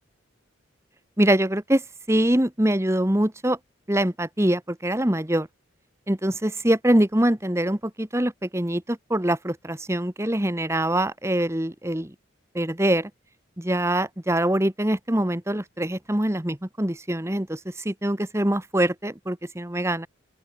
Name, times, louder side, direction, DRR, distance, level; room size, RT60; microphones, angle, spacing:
voice 1, 1.2-3.6 3.9-5.5 6.1-12.1 12.5-13.1 13.6-20.1, right 1 dB, 15° right, 1.2 m, -24 dB
open air
head